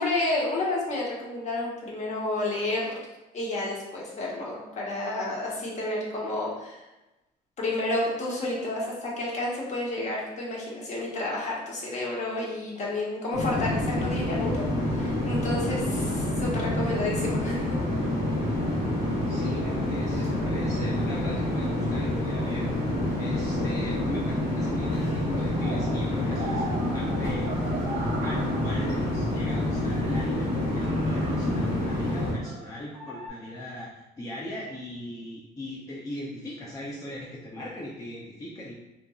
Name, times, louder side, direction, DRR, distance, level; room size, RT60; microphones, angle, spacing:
voice 1, 0.0-2.9 3.3-6.8 7.6-17.8, left 2 dB, 40° left, -4 dB, 0.9 m, -30 dB
sound 1, 13.3-32.3, left 1 dB, 75° left, 1.2 m, -27 dB
voice 2, 19.3-22.7 23.2-26.7 26.9-27.5 28.2-38.7, left 1 dB, 20° left, -5 dB, 0.4 m, -39 dB
sound 2, 21.4-24.9 25.2-29.7 30.2-30.3 30.5-33.3, right 3 dB, 90° right, 0.6 m, -41 dB
2.7 x 2.5 x 2.3 m, 1.0 s
cardioid pair, 110°, 17 cm